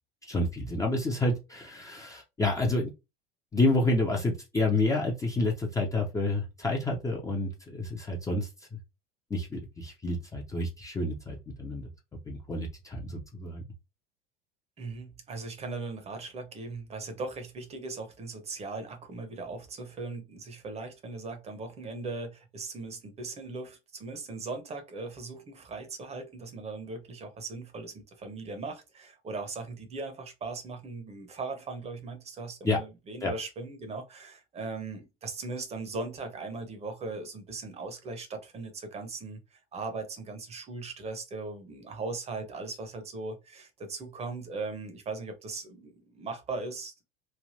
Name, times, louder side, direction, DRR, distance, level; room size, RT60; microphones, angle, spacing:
voice 1, 0.2-2.9 3.5-8.8 9.3-11.9 12.3-13.6 32.6-32.8 33.2-33.3, left 2 dB, 10° left, 0.6 m, -29 dB
voice 2, 14.8-47.0, right 3 dB, 20° right, 0.8 m, -39 dB
3.3 x 2.5 x 2.6 m
figure-of-eight pair, 80°, 30 cm